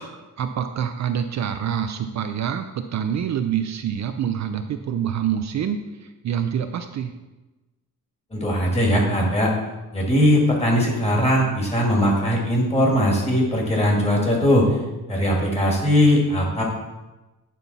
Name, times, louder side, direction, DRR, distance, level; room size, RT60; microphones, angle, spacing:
voice 1, 0.0-7.1, right 8 dB, 55° right, 7 dB, 0.5 m, -26 dB
voice 2, 8.3-9.5 9.9-14.8 15.1-16.6, equal, 20° left, -2 dB, 1.8 m, -20 dB
9.3 x 5.5 x 4.1 m, 1.1 s
wide cardioid pair, 170°, 35 cm